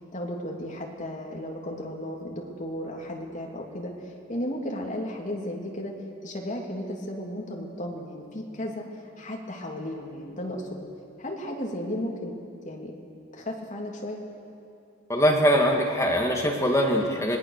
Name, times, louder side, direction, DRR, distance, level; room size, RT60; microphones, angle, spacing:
voice 1, 0.1-5.9 6.2-10.8 11.2-12.3 12.6-12.9 13.3-14.2, left 1 dB, 40° left, -1 dB, 2.9 m, -34 dB
voice 2, 15.1-17.4, equal, 15° left, 1 dB, 1.9 m, -22 dB
26.0 x 19.5 x 6.6 m, 2.6 s
head